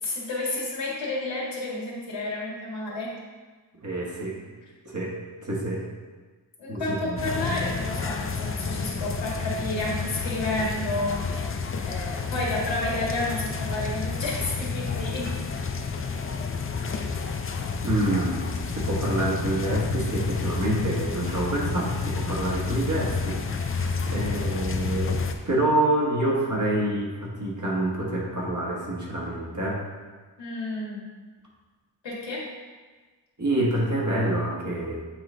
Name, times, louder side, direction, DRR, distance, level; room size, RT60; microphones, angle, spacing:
voice 1, 0.0-3.1 6.6-11.5 11.8-15.5 30.4-31.1 32.0-32.4, left 2 dB, 80° left, -5 dB, 1.8 m, -31 dB
voice 2, 3.8-4.4 4.8-5.8 6.7-7.2 17.8-25.2 25.5-29.8 33.4-35.0, right 1 dB, 40° right, -4 dB, 1.4 m, -27 dB
sound 1, 7.2-25.3, left 5 dB, 30° left, 0.4 m, -30 dB
7.6 x 4.0 x 3.3 m, 1.4 s
wide cardioid pair, 105°, 44 cm